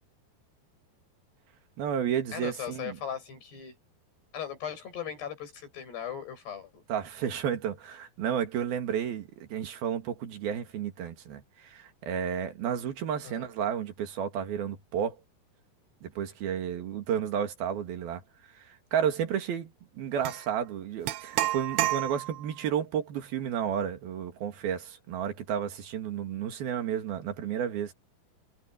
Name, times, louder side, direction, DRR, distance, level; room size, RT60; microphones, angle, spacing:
voice 1, 1.8-3.0 6.9-15.2 16.0-18.2 18.6-27.9, right 8 dB, 65° right, 3.9 m, -32 dB
voice 2, 2.3-3.8 4.3-6.8 13.2-13.5, left 9 dB, 80° left, 9.7 m, -38 dB
sound 1, 20.2-20.4 21.1-22.5, right 15 dB, 80° right, 3.2 m, -30 dB
omnidirectional pair, 4.7 m